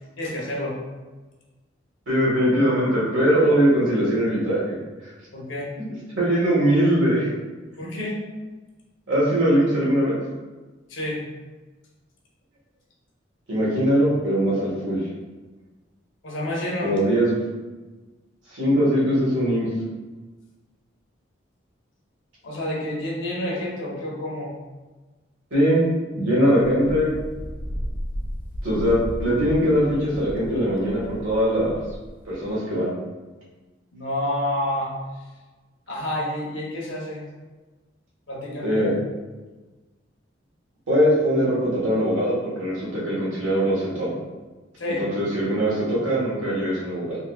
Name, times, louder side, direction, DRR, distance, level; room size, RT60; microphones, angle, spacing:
voice 1, 0.2-0.8 5.3-5.7 7.8-8.2 10.9-11.2 16.2-16.9 22.4-24.5 33.9-34.9 35.9-37.2 38.3-38.8 44.8-45.1, left 1 dB, 75° left, -3 dB, 0.8 m, -29 dB
voice 2, 2.1-5.1 5.7-5.9 6.2-7.3 9.1-10.1 13.5-15.1 16.8-17.4 18.5-19.7 25.5-27.1 28.6-31.8 32.3-32.9 38.6-38.9 40.9-44.1 44.8-47.2, equal, 85° right, -7 dB, 1.4 m, -21 dB
Wind, 26.6-32.5, equal, 40° left, 0.5 m, -34 dB
3.7 x 2.6 x 2.3 m, 1.2 s
head